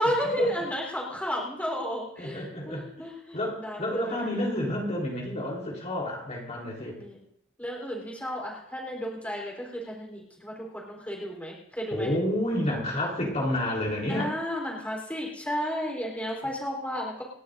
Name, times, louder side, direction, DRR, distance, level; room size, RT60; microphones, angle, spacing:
voice 1, 0.0-4.3 7.0-7.2 7.6-12.1 14.1-17.2, equal, 10° left, -2 dB, 4.0 m, -32 dB
voice 2, 2.2-3.0 3.3-7.0 11.9-14.3, left 1 dB, 35° left, -2 dB, 3.9 m, -30 dB
29.0 x 12.0 x 2.7 m, 0.76 s
head